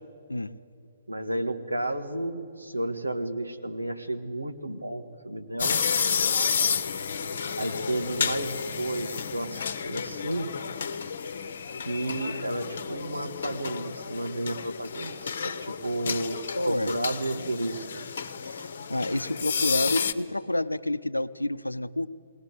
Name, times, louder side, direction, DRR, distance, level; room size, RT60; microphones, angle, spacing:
voice 1, 1.1-5.9 7.6-10.5 11.8-18.0, right 1 dB, 85° right, 5 dB, 1.7 m, -32 dB
sound 1, 5.6-20.1, left 6 dB, 55° left, 1.1 m, -31 dB
voice 2, 16.5-17.0 18.4-22.1, left 1 dB, 85° left, 13 dB, 0.6 m, -29 dB
21.0 x 19.0 x 8.1 m, 2.5 s
figure-of-eight pair, 125°, 0 cm